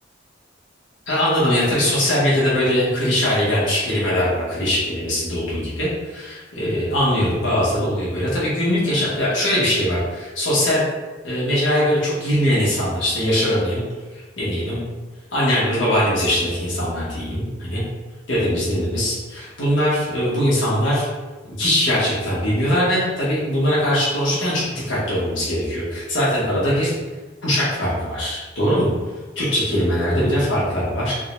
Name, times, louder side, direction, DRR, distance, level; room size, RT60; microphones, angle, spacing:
voice 1, 1.1-10.8 11.2-13.8 14.4-14.8 15.3-17.8 18.3-21.1 21.5-26.9 27.4-28.9 29.3-31.1, equal, 75° left, -8 dB, 1.1 m, -21 dB
3.7 x 2.2 x 2.9 m, 1.3 s
head